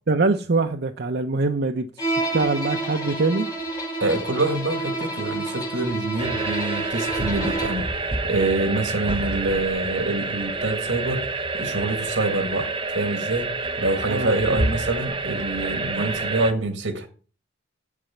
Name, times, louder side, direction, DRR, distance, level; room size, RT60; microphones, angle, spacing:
voice 1, 0.1-3.5 14.1-14.6, right 3 dB, 60° right, 0.8 m, -24 dB
Bowed string instrument, 2.0-7.9, right 2 dB, 20° left, 5.8 m, -29 dB
voice 2, 4.0-7.9 8.2-17.1, right 2 dB, 85° right, 2.0 m, -26 dB
sound 1, 6.2-16.5, right 3 dB, 25° right, 0.9 m, -28 dB
8.4 x 7.8 x 7.2 m
head